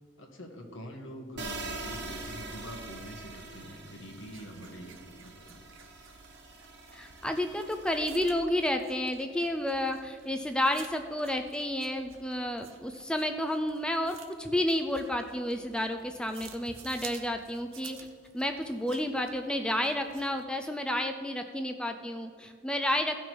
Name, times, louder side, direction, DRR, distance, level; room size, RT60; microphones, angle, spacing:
voice 1, 0.2-5.6, equal, 65° left, 2 dB, 1.5 m, -45 dB
sound 1, 1.3-8.3, right 3 dB, 55° right, 1.3 m, -44 dB
sound 2, 4.2-20.4, right 6 dB, 75° right, 1.0 m, -53 dB
voice 2, 6.9-18.0 18.3-23.2, left 1 dB, 5° left, 5 dB, 0.4 m, -31 dB
15.0 x 6.1 x 4.6 m, 2.2 s
head